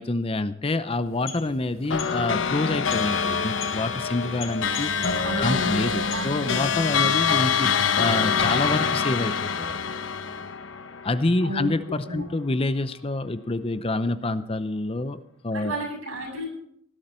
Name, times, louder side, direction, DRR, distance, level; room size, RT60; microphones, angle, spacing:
voice 1, 0.0-9.8 11.0-15.8, left 2 dB, 25° left, 13 dB, 0.7 m, -27 dB
sound 1, 0.9-6.7, left 6 dB, 80° left, 3.7 m, -43 dB
sound 2, 1.9-11.5, left 6 dB, 65° left, 1.0 m, -25 dB
voice 2, 5.2-6.7 11.4-11.7 12.0-12.2 15.5-16.5, equal, 85° right, 4 dB, 7.9 m, -32 dB
18.0 x 12.0 x 4.4 m, 0.69 s
head